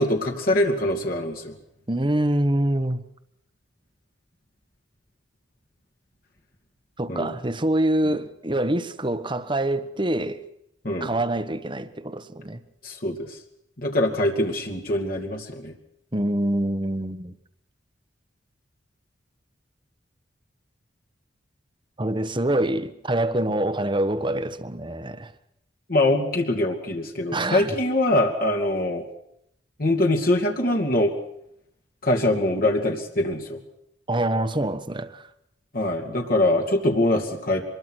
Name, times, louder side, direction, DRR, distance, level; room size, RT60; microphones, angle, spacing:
voice 1, 0.0-1.5 7.1-7.3 10.8-11.1 12.8-13.3 13.8-15.7 25.9-29.0 29.8-31.1 32.0-33.6 35.7-37.6, left 1 dB, 50° left, 2.7 m, -23 dB
voice 2, 1.9-3.0 7.0-10.4 11.0-12.6 16.1-17.4 22.0-25.3 27.3-27.7 34.1-35.3, right 1 dB, 25° right, 1.3 m, -25 dB
25.5 x 22.0 x 6.3 m
head